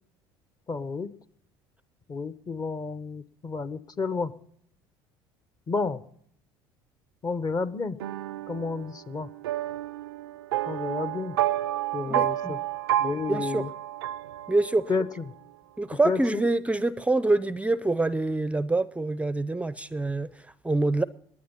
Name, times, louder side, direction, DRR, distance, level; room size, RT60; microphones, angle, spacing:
voice 1, 0.7-1.1 2.1-4.3 5.7-6.0 7.2-8.0 8.5-9.3 10.7-11.4 11.9-12.6 13.0-13.7 14.9-15.2 16.0-16.5, left 4 dB, 30° left, 14 dB, 1.2 m, -31 dB
sound 1, 8.0-15.0, right 14 dB, 90° right, 0.5 m, -30 dB
voice 2, 12.1-12.6 13.3-13.7 14.5-14.8 15.8-21.0, right 2 dB, 10° right, 16 dB, 0.6 m, -26 dB
19.5 x 9.4 x 5.5 m, 0.65 s
hypercardioid pair, 75°, 12 cm